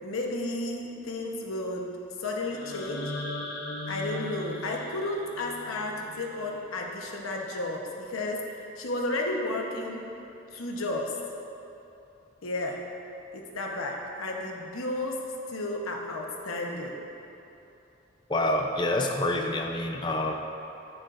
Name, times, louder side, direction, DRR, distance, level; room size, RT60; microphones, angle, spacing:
voice 1, 0.0-3.1 3.9-10.1 10.5-11.1 12.4-12.8 13.3-15.2 15.5-17.0, left 2 dB, 80° left, 0 dB, 1.0 m, -33 dB
sound 1, 2.5-6.5, left 1 dB, 50° left, 1.0 m, -38 dB
voice 2, 18.3-20.3, left 1 dB, 20° left, 2 dB, 0.5 m, -27 dB
9.9 x 9.6 x 2.6 m, 2.9 s
head